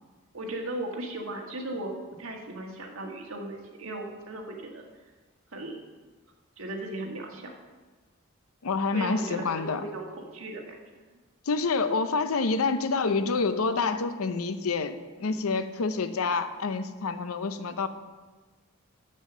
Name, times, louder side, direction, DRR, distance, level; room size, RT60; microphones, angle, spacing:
voice 1, 0.3-4.9 5.5-5.9 6.6-7.5 8.9-10.8 15.2-15.4, right 1 dB, 75° right, 1 dB, 1.5 m, -37 dB
voice 2, 8.6-9.8 11.5-17.9, left 4 dB, 85° left, 10 dB, 0.6 m, -27 dB
7.5 x 7.3 x 6.7 m, 1.3 s
head